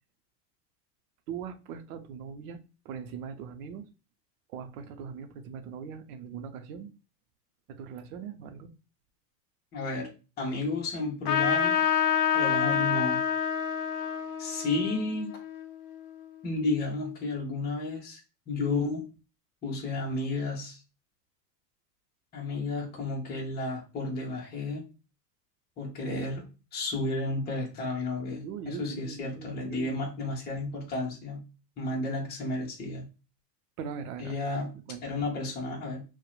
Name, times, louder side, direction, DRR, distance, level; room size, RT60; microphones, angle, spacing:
voice 1, 1.3-2.6 2.8-3.9 4.5-6.9 7.7-8.7 28.4-30.0 33.8-35.3, right 7 dB, 60° right, 0.6 m, -41 dB
voice 2, 9.7-10.1 10.4-11.8 12.3-13.2 14.4-15.3 16.4-18.2 18.5-19.0 19.6-20.8 22.3-24.8 25.8-26.5 26.7-31.4 31.8-33.0 34.2-34.7 35.0-36.0, left 2 dB, 20° left, 0.8 m, -32 dB
Trumpet, 11.2-16.2, left 8 dB, 65° left, 0.6 m, -28 dB
2.8 x 2.1 x 2.2 m
hypercardioid pair, 115°, 49 cm